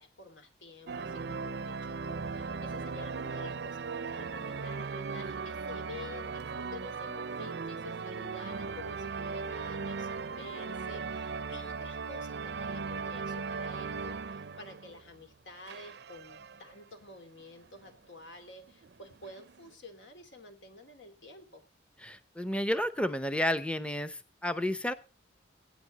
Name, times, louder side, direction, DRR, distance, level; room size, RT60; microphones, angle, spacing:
voice 1, 0.0-21.6, left 2 dB, 75° left, 6 dB, 2.8 m, -50 dB
sound 1, 0.9-15.2 15.6-16.8 17.4-17.5 17.8-17.9 18.7-19.7, right 5 dB, 60° right, 0.5 m, -38 dB
voice 2, 22.0-24.9, left 1 dB, 5° left, 11 dB, 0.7 m, -31 dB
18.0 x 9.2 x 4.0 m, 0.31 s
head